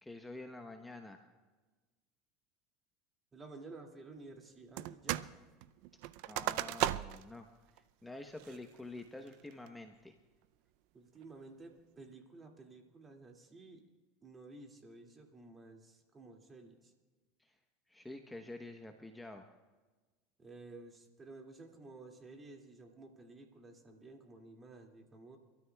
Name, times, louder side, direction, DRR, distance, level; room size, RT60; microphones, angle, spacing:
voice 1, 0.0-1.2 6.3-7.5 7.7-10.1 17.4-17.6 17.9-19.4, left 2 dB, 5° left, 4 dB, 1.0 m, -48 dB
voice 2, 3.3-5.4 10.9-13.8 14.2-16.9 20.4-25.4, right 3 dB, 25° right, 2 dB, 2.4 m, -53 dB
sound 1, 4.8-5.3 5.6-7.3 7.8-7.9 8.4-8.8 9.3-9.7, right 15 dB, 65° right, 0.5 m, -36 dB
29.0 x 13.0 x 2.3 m, 1.3 s
supercardioid pair, 100°, 0 cm